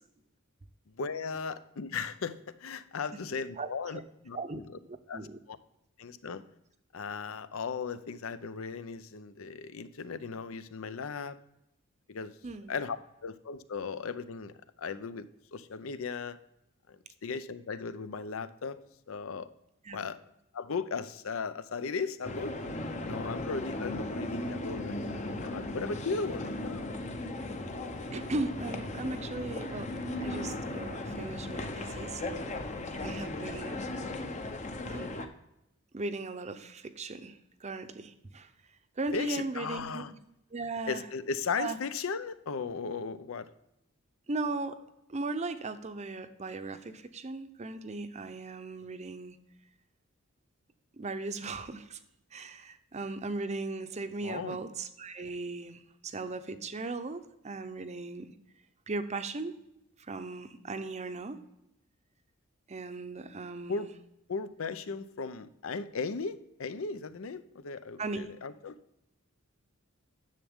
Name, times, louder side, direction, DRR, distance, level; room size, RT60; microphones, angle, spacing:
voice 1, 0.9-4.0 4.2-4.8 5.1-5.6 6.0-6.4 6.9-11.4 12.1-12.3 12.7-14.5 14.8-16.4 16.9-17.0 17.2-18.8 19.1-19.5 19.9-20.2 20.5-22.5 23.0-26.9 39.1-40.1 40.9-43.5 54.2-54.6 63.7-63.9 64.3-68.8, left 5 dB, 75° left, 13 dB, 0.6 m, -37 dB
voice 2, 3.6-4.0 4.3-4.6 4.9-5.4 12.4-12.7 19.9-20.0 28.1-29.9 30.2-32.5 33.0-33.9 34.9-35.2 35.9-38.5 39.0-40.0 40.5-41.0 41.6-41.8 44.3-44.8 45.1-49.4 51.0-52.0 52.3-58.3 58.9-59.6 60.1-61.4 62.7-63.9 68.0-68.3, right 3 dB, 35° right, 10 dB, 0.6 m, -37 dB
sound 1, 22.2-35.3, left 1 dB, 35° left, 0.8 m, -37 dB
10.5 x 7.1 x 3.6 m, 0.85 s
head